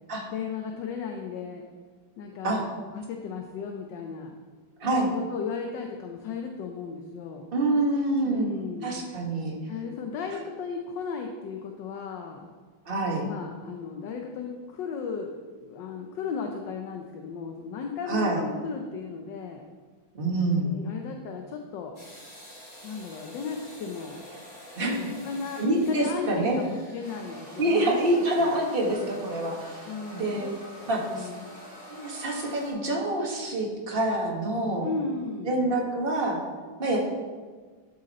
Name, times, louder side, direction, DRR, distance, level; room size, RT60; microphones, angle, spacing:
voice 1, 0.3-1.7 2.2-4.3 4.8-7.5 8.2-9.0 9.7-12.4 13.2-19.6 20.6-22.0 22.8-24.2 24.8-28.5 29.9-30.5 30.8-31.6 34.8-35.6, left 5 dB, 65° left, 3 dB, 1.3 m, -35 dB
voice 2, 4.8-5.1 7.5-8.5 8.8-9.5 12.8-13.2 18.1-18.4 20.1-20.7 24.8-25.1 25.6-26.6 27.6-30.5 30.9-31.3 31.9-34.9 35.4-36.4 36.8-37.0, right 2 dB, 30° right, -2 dB, 1.6 m, -26 dB
sound 1, 22.0-32.7, equal, 45° left, 3.6 m, -46 dB
11.5 x 6.4 x 4.2 m, 1.4 s
omnidirectional pair, 2.3 m